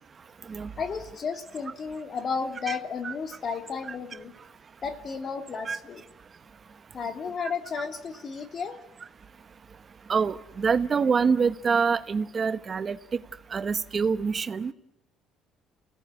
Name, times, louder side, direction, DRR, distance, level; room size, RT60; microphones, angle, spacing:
voice 1, 0.8-4.3 4.8-6.0 6.9-8.8, left 5 dB, 40° left, 6 dB, 2.9 m, -33 dB
voice 2, 10.1-13.2 13.5-14.7, right 5 dB, 30° right, 12 dB, 0.9 m, -26 dB
29.0 x 17.5 x 9.7 m, 0.97 s
cardioid pair, 120°, 0 cm